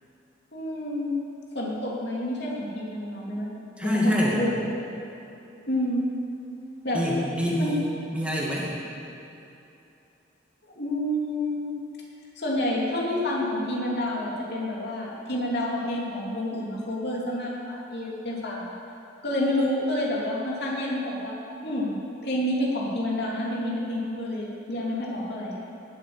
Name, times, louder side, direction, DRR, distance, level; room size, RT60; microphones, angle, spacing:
voice 1, 0.5-1.2 1.5-3.5 3.8-4.6 5.7-6.0 6.8-7.0 7.6-7.8 10.6-11.7 12.4-18.7 19.2-22.0 22.2-25.5, left 1 dB, 60° left, -4 dB, 2.9 m, -29 dB
voice 2, 3.8-4.4 6.9-7.8 8.1-8.7, equal, 5° right, -5 dB, 2.2 m, -25 dB
19.0 x 7.9 x 6.9 m, 2.8 s
head